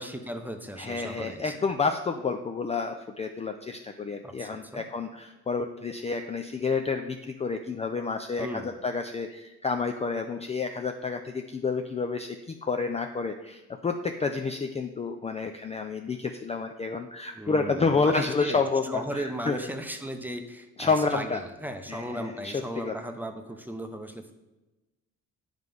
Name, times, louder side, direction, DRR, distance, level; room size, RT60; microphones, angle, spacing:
voice 1, 0.0-1.7 4.2-4.8 8.4-8.7 17.3-24.3, right 1 dB, 5° right, 6 dB, 0.7 m, -36 dB
voice 2, 0.8-19.6 20.8-21.4 21.9-22.9, left 4 dB, 20° left, 5 dB, 0.4 m, -29 dB
9.0 x 3.2 x 5.2 m, 1.0 s
cardioid pair, 90°, 30 cm